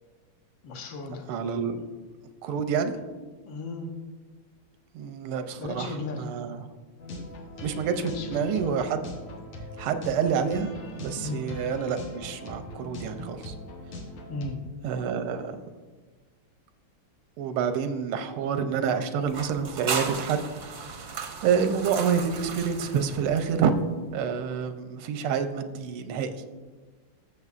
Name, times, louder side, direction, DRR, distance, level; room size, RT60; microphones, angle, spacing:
voice 1, 0.6-1.3 3.4-3.9 5.6-6.2 8.0-8.7 9.8-9.9 11.2-11.4 14.3-14.6, left 3 dB, 70° left, 4 dB, 1.7 m, -36 dB
voice 2, 1.3-1.8 2.4-3.0 4.9-6.6 7.1-7.2 7.6-9.1 9.8-13.5 14.8-15.6 17.4-20.4 21.4-23.7 24.1-26.4, right 7 dB, 90° right, 9 dB, 1.6 m, -28 dB
sound 1, 7.0-14.5, left 2 dB, 90° left, 2.0 m, -41 dB
sound 2, 19.3-23.8, right 5 dB, 60° right, 0.8 m, -35 dB
14.5 x 7.0 x 2.5 m, 1.4 s
omnidirectional pair, 2.3 m